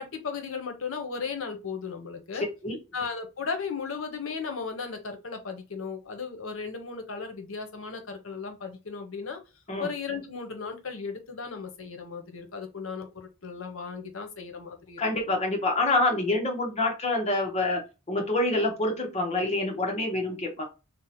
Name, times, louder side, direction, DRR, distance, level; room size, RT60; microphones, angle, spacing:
voice 1, 0.0-2.5 2.9-9.4 9.8-15.0, left 5 dB, 75° left, 0.7 m, -36 dB
voice 2, 2.3-2.8 9.7-9.9 15.0-17.8 18.1-20.6, left 2 dB, 30° left, 0.8 m, -26 dB
2.7 x 2.1 x 4.1 m
head